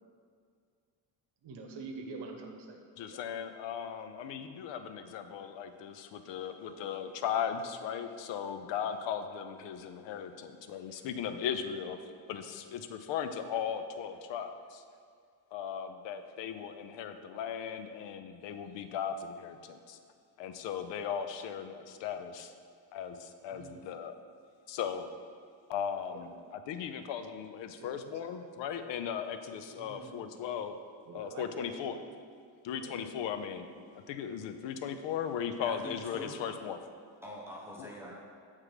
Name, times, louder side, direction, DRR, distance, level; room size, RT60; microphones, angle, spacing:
voice 1, 1.4-3.2 23.5-23.9 26.1-26.2 27.8-27.9 29.8-30.3 31.1-32.0 32.8-33.3, right 3 dB, 55° right, 3 dB, 1.0 m, -46 dB
voice 2, 3.0-12.0 12.3-14.8 15.5-20.0 20.4-22.5 22.9-24.1 24.7-25.1 25.7-30.7 31.1-32.0 32.6-36.8 37.8-37.9, left 8 dB, 65° left, 9 dB, 0.6 m, -37 dB
voice 3, 35.6-36.4 37.2-38.1, equal, 5° right, -4 dB, 0.9 m, -44 dB
7.8 x 3.7 x 4.9 m, 2.2 s
cardioid pair, 120°, 48 cm